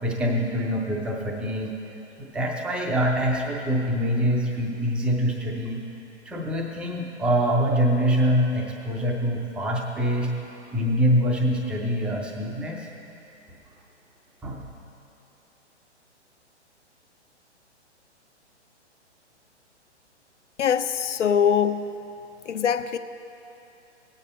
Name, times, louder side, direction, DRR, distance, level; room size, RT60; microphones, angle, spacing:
voice 1, 0.0-1.7 2.2-5.8 6.3-10.3 10.7-12.9 14.4-14.6, equal, 5° right, 0 dB, 0.4 m, -24 dB
voice 2, 20.6-21.9 22.5-23.0, left 8 dB, 85° left, 11 dB, 0.7 m, -22 dB
16.5 x 8.8 x 4.2 m, 2.8 s
hypercardioid pair, 135°, 35 cm